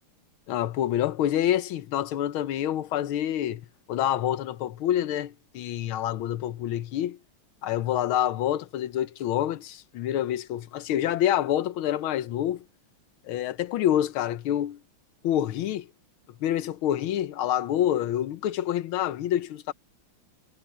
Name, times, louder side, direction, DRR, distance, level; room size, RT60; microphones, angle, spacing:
voice 1, 0.5-7.2 7.6-12.6 13.2-14.8 15.2-15.9 16.4-19.7, left 11 dB, 80° left, 1.7 m, -27 dB
omnidirectional pair, 2.3 m